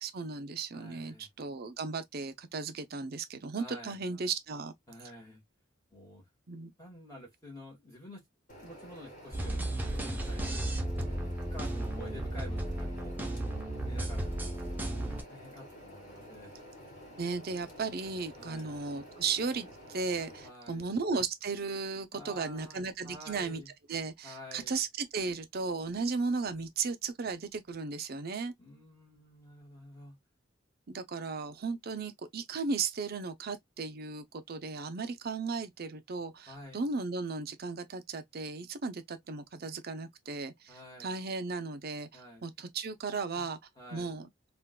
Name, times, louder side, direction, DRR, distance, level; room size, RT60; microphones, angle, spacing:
voice 1, 0.0-4.7 6.5-6.7 17.2-23.6 23.9-28.5 30.9-40.7 41.0-43.6 43.9-44.5, right 4 dB, 50° right, 0.6 m, -35 dB
voice 2, 0.7-1.3 3.6-4.0 4.9-5.4 5.9-6.3 6.8-8.2 8.6-13.2 13.8-16.5 18.4-18.7 20.4-21.0 22.1-23.7 24.2-24.8 28.6-30.2 36.5-36.9 40.7-41.1 42.1-42.4 43.3-43.5 43.7-44.1, left 1 dB, 15° left, 1.6 m, -50 dB
sound 1, 8.5-20.5, equal, 45° left, 2.1 m, -50 dB
sound 2, 9.3-15.2, right 1 dB, 10° right, 0.7 m, -34 dB
3.7 x 2.5 x 2.2 m
head